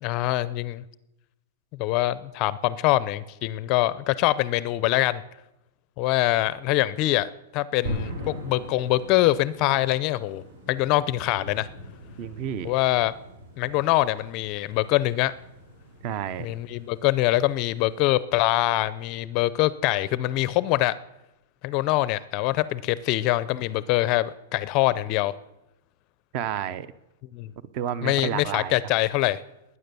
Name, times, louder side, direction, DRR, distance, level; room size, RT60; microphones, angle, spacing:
voice 1, 0.0-0.8 1.8-5.2 6.0-11.7 12.6-13.1 13.6-15.3 16.4-21.0 21.6-25.3 27.3-27.5 28.0-29.4, left 16 dB, 30° left, 17 dB, 0.5 m, -24 dB
sound 1, 7.9-18.0, equal, 60° right, 7.0 m, -41 dB
voice 2, 12.2-12.7 16.0-16.5 26.3-26.9 27.7-28.8, right 9 dB, 35° right, 17 dB, 0.7 m, -30 dB
20.0 x 9.7 x 6.9 m, 0.92 s
supercardioid pair, 165°, 0 cm